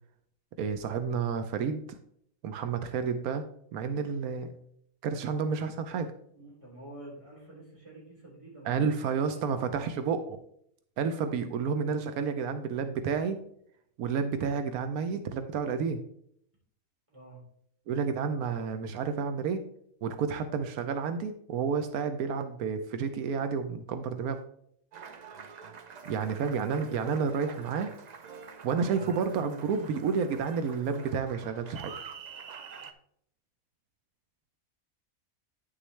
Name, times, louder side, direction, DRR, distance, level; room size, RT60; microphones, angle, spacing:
voice 1, 0.6-1.8 2.4-3.4 3.7-4.5 5.0-6.1 8.7-10.4 11.0-13.4 14.0-16.0 17.9-19.6 20.0-24.4 26.1-27.9 28.6-31.9, right 6 dB, 90° right, 9 dB, 1.1 m, -30 dB
voice 2, 6.3-9.0 9.3-9.7 17.1-17.4, right 1 dB, 20° right, -4 dB, 3.4 m, -49 dB
Applause, 24.9-32.9, right 6 dB, 60° right, 0.4 m, -46 dB
9.5 x 6.1 x 3.3 m, 0.69 s
omnidirectional pair, 1.5 m